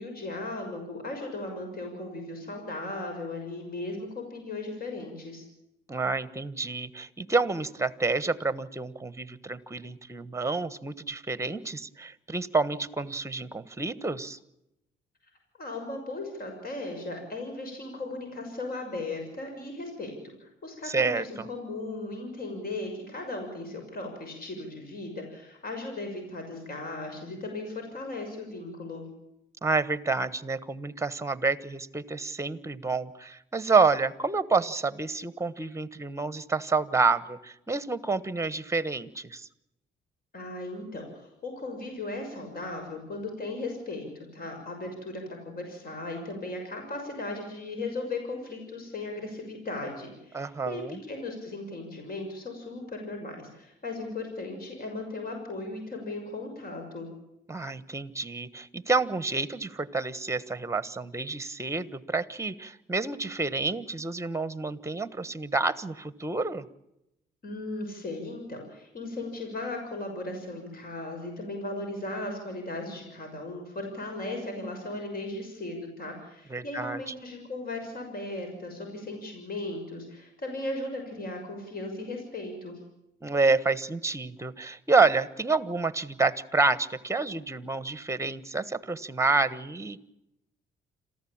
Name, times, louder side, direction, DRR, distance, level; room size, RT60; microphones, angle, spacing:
voice 1, 0.0-5.4 15.6-29.0 40.3-50.8 51.1-57.1 67.4-82.8, left 2 dB, 50° left, 4 dB, 6.5 m, -37 dB
voice 2, 5.9-14.4 20.8-21.2 29.6-39.5 50.3-51.0 57.5-66.6 76.5-77.0 83.2-90.0, right 3 dB, 15° right, 15 dB, 1.3 m, -28 dB
27.0 x 15.0 x 8.8 m, 0.87 s
cardioid pair, 90°, 20 cm